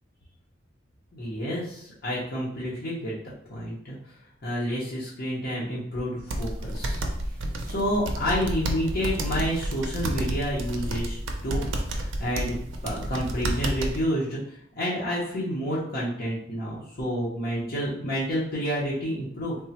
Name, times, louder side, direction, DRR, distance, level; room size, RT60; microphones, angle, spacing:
voice 1, 1.1-3.2 3.5-4.0 4.4-7.0 7.6-11.7 12.0-12.5 12.8-19.6, equal, 50° left, -7 dB, 0.8 m, -29 dB
sound 1, 6.3-14.0, right 1 dB, 75° right, 0.5 m, -30 dB
3.4 x 2.1 x 2.8 m, 0.68 s
head